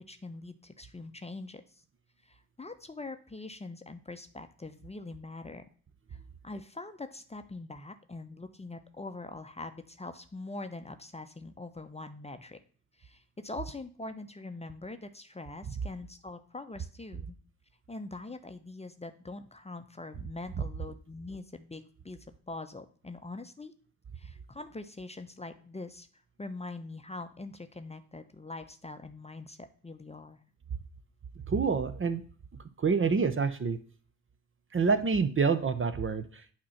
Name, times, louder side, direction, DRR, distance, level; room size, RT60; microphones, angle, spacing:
voice 1, 0.1-1.6 2.2-5.6 6.4-12.6 13.0-17.4 17.9-22.2 22.5-23.7 24.2-26.1 26.4-30.4, left 2 dB, 15° left, 8 dB, 0.7 m, -43 dB
voice 2, 31.5-32.2 32.8-33.8 34.7-36.5, right 5 dB, 30° right, 10 dB, 0.7 m, -27 dB
8.4 x 2.9 x 5.7 m, 0.44 s
hypercardioid pair, 40°, 40 cm